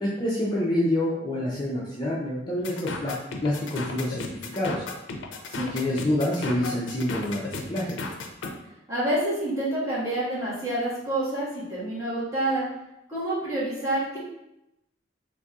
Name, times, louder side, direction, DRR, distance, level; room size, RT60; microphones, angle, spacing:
voice 1, 0.0-3.1 3.4-4.2 4.5-4.8 5.5-8.0, left 1 dB, 25° left, -6 dB, 0.4 m, -27 dB
sound 1, 2.6-8.5, left 3 dB, 80° left, 0.4 m, -35 dB
voice 2, 8.9-12.6 13.1-14.2, right 1 dB, 15° right, -11 dB, 1.3 m, -28 dB
4.0 x 2.6 x 2.4 m, 0.89 s
head